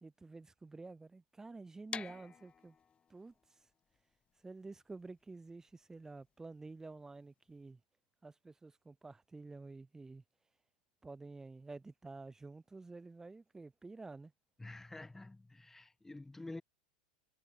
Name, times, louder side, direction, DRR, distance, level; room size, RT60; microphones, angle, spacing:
voice 1, 0.0-2.8 3.1-3.6 4.4-7.8 8.2-10.2 11.0-14.3, right 3 dB, 10° right, 1.4 m, -50 dB
sound 1, 1.9-7.7, left 7 dB, 25° left, 2.8 m, -50 dB
voice 2, 14.6-16.6, left 2 dB, 10° left, 3.9 m, -48 dB
hypercardioid pair, 105°, 4 cm